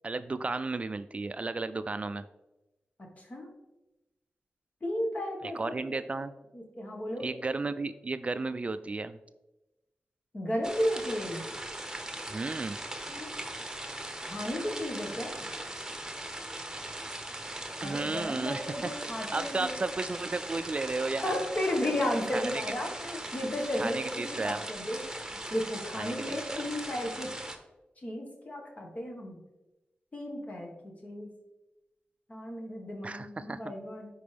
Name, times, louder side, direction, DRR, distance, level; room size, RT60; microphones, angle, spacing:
voice 1, 0.0-2.3 5.4-6.3 7.2-9.2 12.3-12.8 17.8-21.4 22.3-22.9 23.8-24.6 25.9-26.6 33.0-33.6, right 3 dB, 40° right, 12 dB, 0.3 m, -34 dB
voice 2, 3.2-3.5 4.8-5.8 6.5-7.3 10.3-11.5 13.1-13.3 14.2-15.5 17.8-19.8 21.2-25.0 25.3-27.3 28.0-29.4 30.1-30.7 31.0-31.3 32.3-34.1, left 1 dB, 45° left, 0 dB, 1.6 m, -34 dB
sound 1, 10.6-27.6, right 1 dB, 15° right, 1.0 m, -39 dB
10.5 x 4.4 x 3.5 m, 1.0 s
cardioid pair, 60°, 3 cm